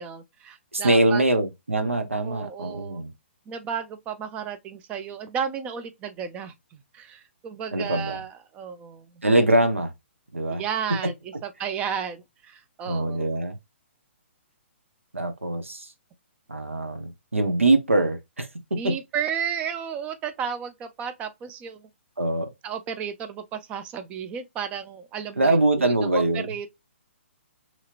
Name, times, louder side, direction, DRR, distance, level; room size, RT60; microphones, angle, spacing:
voice 1, 0.0-1.2 2.2-3.0 3.5-9.1 10.5-13.4 18.7-21.9 22.6-26.7, right 7 dB, 15° right, 0.4 m, -33 dB
voice 2, 0.7-3.1 7.7-8.2 9.2-9.9 10.3-10.6 11.0-11.1 12.8-13.6 15.1-15.9 16.5-18.9 22.2-22.5 25.4-26.5, right 2 dB, 80° right, 0.7 m, -23 dB
3.0 x 2.8 x 2.3 m
figure-of-eight pair, 125°, 7 cm